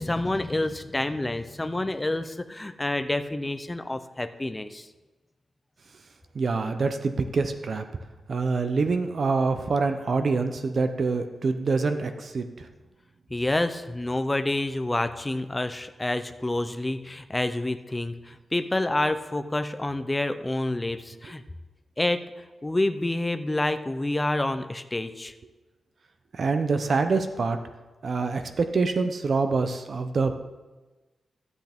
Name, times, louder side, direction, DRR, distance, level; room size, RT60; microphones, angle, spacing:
voice 1, 0.0-4.9 13.3-21.4 22.0-22.2 22.6-25.3, left 2 dB, 15° left, 10 dB, 0.4 m, -28 dB
voice 2, 6.4-7.8 8.3-12.4 26.4-27.6 28.0-30.3, right 4 dB, 45° right, 8 dB, 0.6 m, -25 dB
12.5 x 8.0 x 3.5 m, 1.2 s
wide cardioid pair, 180°, 0 cm